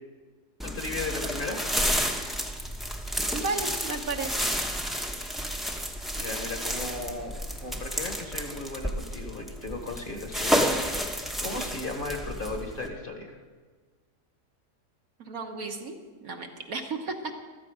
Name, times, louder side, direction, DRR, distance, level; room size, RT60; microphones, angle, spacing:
voice 1, 0.6-1.6 6.2-7.3 7.6-10.6 11.4-13.3, left 2 dB, 35° left, 3 dB, 1.6 m, -35 dB
sound 1, 0.6-12.9, equal, ahead, 0.9 m, -31 dB
voice 2, 3.3-4.5 15.2-16.0 16.2-17.3, right 3 dB, 60° right, 3 dB, 1.6 m, -33 dB
14.5 x 13.0 x 5.0 m, 1.4 s
omnidirectional pair, 1.7 m